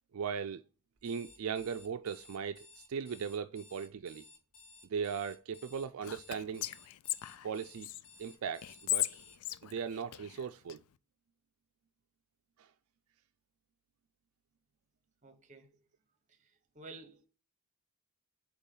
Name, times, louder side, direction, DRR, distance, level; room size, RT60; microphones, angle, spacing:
voice 1, 0.1-0.6 1.0-4.2 4.9-6.6 7.4-7.9 8.2-9.1 9.6-10.8 12.6-12.7, right 6 dB, 75° right, 0.4 m, -38 dB
Alarm, 1.0-9.4, left 3 dB, 70° left, 1.6 m, -57 dB
Whispering, 6.0-8.0 8.6-10.8, left 15 dB, 90° left, 0.4 m, -37 dB
voice 2, 15.2-15.8 16.3-17.3, right 3 dB, 35° right, 0.9 m, -53 dB
8.2 x 3.0 x 3.8 m
head